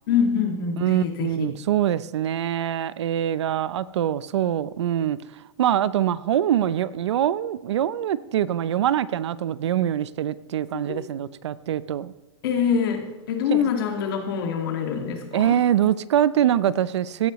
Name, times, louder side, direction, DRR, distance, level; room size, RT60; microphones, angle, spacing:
voice 1, 0.1-1.5 10.9-11.0 12.4-15.6, left 7 dB, 50° left, 4 dB, 2.0 m, -25 dB
voice 2, 0.8-5.2 5.6-12.1 13.5-13.7 15.3-17.3, right 11 dB, 70° right, 17 dB, 0.6 m, -24 dB
16.5 x 12.0 x 3.1 m, 1.1 s
supercardioid pair, 165°, 15 cm